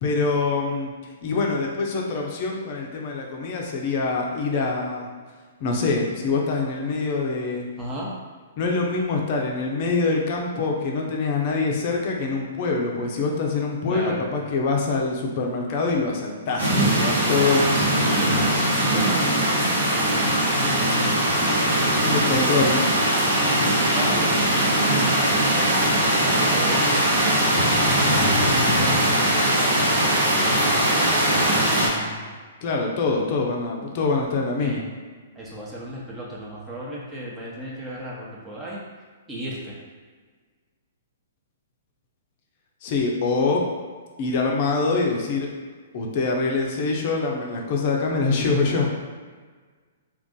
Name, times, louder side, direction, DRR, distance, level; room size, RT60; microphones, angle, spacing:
voice 1, 0.0-5.1 5.6-7.7 8.6-17.7 22.0-22.9 32.6-34.8 42.8-43.6 44.2-45.5 45.9-48.9, left 3 dB, 45° left, 0 dB, 0.6 m, -24 dB
voice 2, 7.8-8.1 13.9-14.3 17.4-21.8 22.0-22.7 23.3-25.4 26.1-26.9 27.8-32.3 34.6-34.8 35.3-38.8 39.3-39.8, equal, 15° right, -5 dB, 0.8 m, -35 dB
sound 1, 16.6-31.9, right 1 dB, 75° right, 1.3 m, -20 dB
2.5 x 2.5 x 3.7 m, 1.5 s
hypercardioid pair, 125°, 0 cm